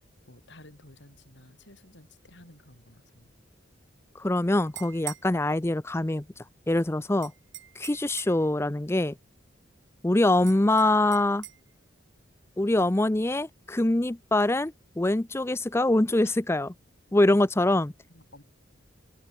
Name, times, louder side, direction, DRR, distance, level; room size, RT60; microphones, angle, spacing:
voice 1, 0.3-3.3 16.2-16.4 17.3-17.4 18.1-18.4, left 1 dB, 65° left, 7.3 m, -53 dB
voice 2, 4.2-6.2 6.7-7.3 7.8-9.2 10.0-11.4 12.6-16.7 17.1-17.9, left 1 dB, 15° left, 0.5 m, -24 dB
sound 1, 4.6-5.3 7.2-8.5 10.5-11.6, right 15 dB, 70° right, 2.9 m, -42 dB
open air
head